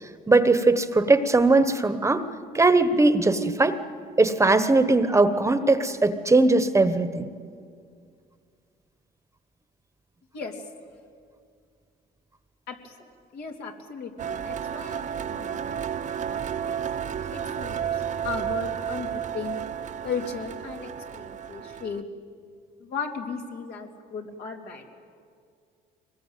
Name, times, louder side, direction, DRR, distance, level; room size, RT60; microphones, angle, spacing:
voice 1, 0.3-2.3 2.5-3.8 4.2-7.3, right 3 dB, 15° right, 10 dB, 1.2 m, -20 dB
voice 2, 12.7-13.1 13.3-15.8 16.2-16.7 17.3-19.6 20.0-22.0 22.8-24.9, left 5 dB, 70° left, 2 dB, 3.4 m, -36 dB
sound 1, 14.2-22.0, right 8 dB, 45° right, 0.9 m, -32 dB
24.0 x 21.0 x 9.2 m, 2.2 s
cardioid pair, 110°, 17 cm